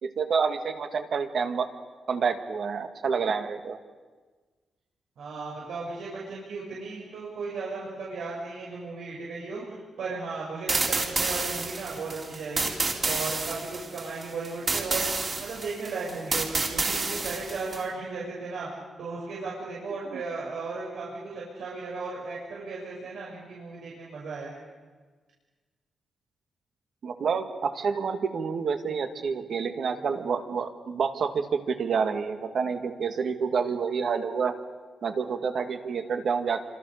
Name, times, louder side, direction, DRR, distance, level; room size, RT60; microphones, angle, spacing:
voice 1, 0.0-1.7 2.1-3.8 20.1-20.2 27.0-34.6 35.0-36.6, right 5 dB, 55° right, 6 dB, 2.2 m, -28 dB
voice 2, 5.2-12.7 13.0-15.1 15.4-18.7 19.0-24.5, right 4 dB, 85° right, -5 dB, 7.0 m, -36 dB
sound 1, 10.7-17.8, right 3 dB, 30° right, 3.4 m, -29 dB
29.0 x 26.0 x 6.8 m, 1.4 s
wide cardioid pair, 155°, 0 cm